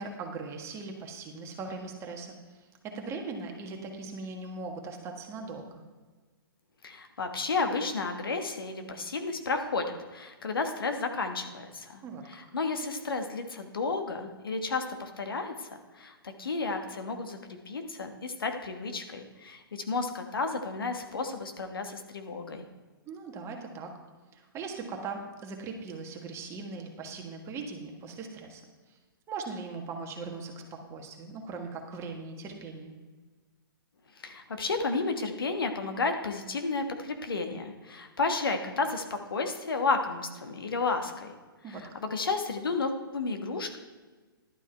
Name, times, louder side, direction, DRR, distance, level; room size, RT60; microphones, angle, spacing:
voice 1, 0.0-2.4 2.8-5.8 12.0-12.2 23.1-23.9 24.3-28.6 29.3-33.0 41.6-41.9, right 4 dB, 20° right, 2 dB, 1.5 m, -39 dB
voice 2, 6.8-12.0 12.3-22.6 34.2-41.3 41.7-43.8, left 3 dB, 70° left, 5 dB, 1.3 m, -32 dB
11.5 x 8.0 x 4.4 m, 1.4 s
figure-of-eight pair, 120°, 12 cm